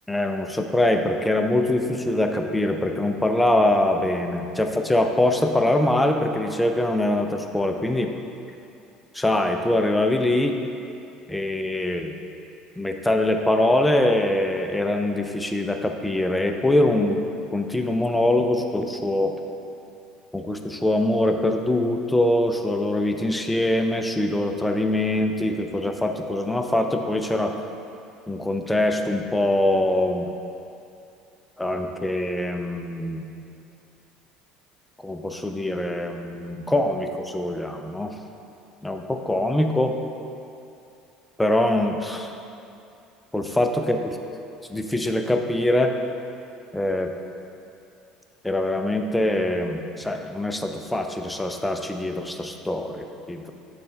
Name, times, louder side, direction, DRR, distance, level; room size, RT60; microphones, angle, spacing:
voice 1, 0.1-8.1 9.1-10.6 11.3-12.1 12.8-17.2 17.5-19.3 20.3-27.5 28.3-30.3 31.6-33.3 35.0-38.1 38.8-40.0 41.4-42.3 43.3-44.0 44.7-45.9 46.7-47.1 48.4-53.5, left 1 dB, 10° left, 4 dB, 0.5 m, -23 dB
6.6 x 3.2 x 5.3 m, 2.7 s
figure-of-eight pair, 65°, 0 cm